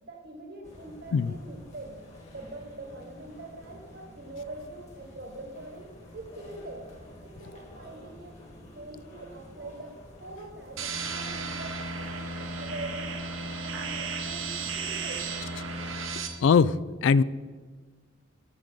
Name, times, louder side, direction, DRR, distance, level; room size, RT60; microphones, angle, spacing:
voice 1, 0.0-2.0 2.3-6.9 7.2-8.4 8.7-13.2 13.6-15.4, right 2 dB, 55° right, 3 dB, 1.4 m, -43 dB
sound 1, 0.6-16.2, left 1 dB, 35° left, 1.7 m, -50 dB
sound 2, 10.8-16.3, right 4 dB, 80° right, 1.1 m, -34 dB
voice 2, 16.4-17.2, left 5 dB, 65° left, 19 dB, 0.3 m, -21 dB
13.5 x 6.6 x 3.9 m, 1.5 s
head